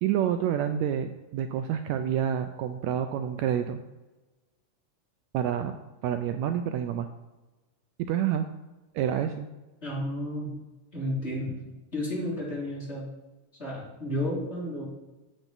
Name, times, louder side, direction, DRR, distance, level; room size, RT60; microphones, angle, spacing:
voice 1, 0.0-3.8 5.3-5.7 6.0-7.1 8.1-8.5 8.9-9.5, right 9 dB, 90° right, 8 dB, 1.6 m, -28 dB
voice 2, 9.8-10.6 10.9-11.6 11.9-13.1 13.6-14.8, left 1 dB, 20° left, -6 dB, 2.9 m, -32 dB
8.7 x 8.1 x 4.0 m, 1.1 s
omnidirectional pair, 3.7 m